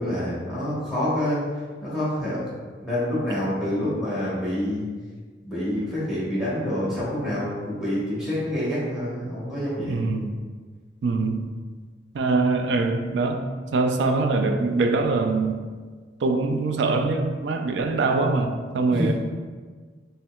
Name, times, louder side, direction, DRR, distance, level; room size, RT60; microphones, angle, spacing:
voice 1, 0.0-1.4 1.8-2.4 2.8-4.9 5.4-10.0 18.9-19.1, left 1 dB, 5° right, -10 dB, 1.2 m, -27 dB
voice 2, 9.9-10.3 11.0-11.5 12.1-13.5 13.7-15.6 16.2-19.1, right 3 dB, 70° right, 5 dB, 0.4 m, -23 dB
5.5 x 2.2 x 2.3 m, 1.5 s
head